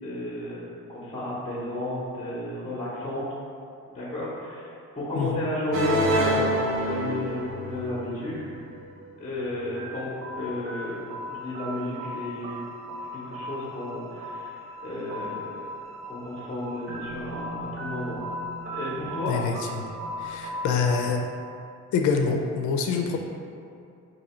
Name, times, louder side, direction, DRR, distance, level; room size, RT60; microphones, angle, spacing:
voice 1, 0.0-3.2 3.9-8.5 9.2-12.6 13.1-15.6 16.1-18.2 18.6-19.4, left 1 dB, 25° left, -7 dB, 0.8 m, -33 dB
sound 1, 5.7-21.1, equal, 45° right, 0.5 m, -32 dB
voice 2, 19.3-19.9 20.2-21.3 21.9-23.2, left 5 dB, 70° left, 3 dB, 0.5 m, -26 dB
2.7 x 2.7 x 4.2 m, 2.5 s
cardioid pair, 90°, 30 cm